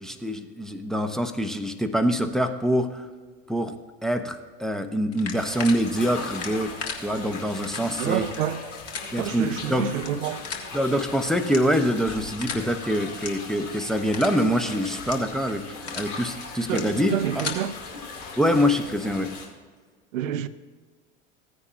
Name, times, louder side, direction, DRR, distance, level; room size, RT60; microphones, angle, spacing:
voice 1, 0.0-3.1 3.5-3.7 4.0-6.8 7.0-8.2 9.1-9.9 10.7-17.5 18.4-19.3, equal, ahead, 0.7 m, -25 dB
sound 1, 5.1-5.7 6.3-7.0 7.6-7.8 8.2-8.4 8.9-9.0 9.9-10.1 10.4-10.7 11.4-11.9 12.4-12.6 13.1-13.3 13.7-13.8 14.1-14.4 15.0-15.2 15.6-16.1 16.6-16.8 17.2-17.6, left 6 dB, 40° left, 1.7 m, -34 dB
sound 2, 5.3-19.5, left 4 dB, 70° left, 2.5 m, -39 dB
voice 2, 8.0-8.6 9.2-10.4 16.7-17.7 20.1-20.5, right 10 dB, 80° right, 0.6 m, -28 dB
15.5 x 9.5 x 2.5 m
hypercardioid pair, 80°, 39 cm